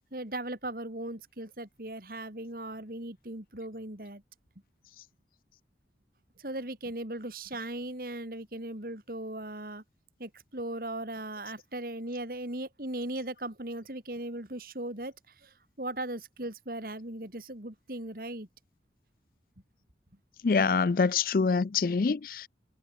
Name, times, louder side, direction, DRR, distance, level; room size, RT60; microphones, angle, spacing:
voice 1, 0.1-4.2 6.4-9.8 10.2-15.1 15.4-15.5 15.8-18.5, right 1 dB, 55° right, 3.0 m, -38 dB
voice 2, 20.4-22.5, left 4 dB, 50° left, 0.4 m, -25 dB
head